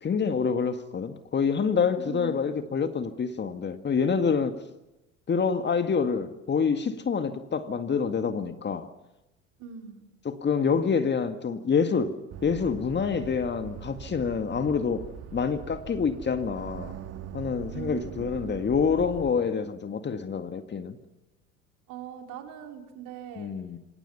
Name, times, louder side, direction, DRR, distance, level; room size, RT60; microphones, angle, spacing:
voice 1, 0.0-4.5 5.3-8.9 10.3-12.1 12.4-16.9 17.3-21.0 23.4-23.8, left 6 dB, 25° left, 1.9 m, -27 dB
voice 2, 2.0-2.6 9.6-10.1 17.7-18.6 21.9-23.5, right 9 dB, 50° right, 4.5 m, -41 dB
sound 1, 12.3-19.3, right 9 dB, 35° right, 1.9 m, -42 dB
28.0 x 25.5 x 5.7 m
figure-of-eight pair, 65°, 40 cm